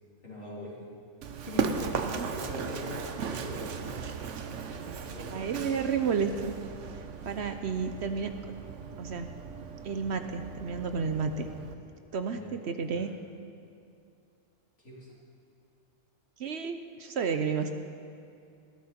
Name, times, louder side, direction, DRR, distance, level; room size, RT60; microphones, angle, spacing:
voice 1, 0.2-0.7 1.5-4.2 5.1-5.5 12.3-13.0 14.8-15.1, left 1 dB, 75° left, -6 dB, 4.1 m, -43 dB
Run, 1.2-11.7, right 6 dB, 85° right, 1.2 m, -37 dB
voice 2, 5.3-6.5 7.2-8.3 9.0-9.3 9.8-11.5 12.1-13.1 16.4-17.7, right 6 dB, 65° right, 7 dB, 1.0 m, -31 dB
20.5 x 14.5 x 4.4 m, 2.5 s
omnidirectional pair, 1.2 m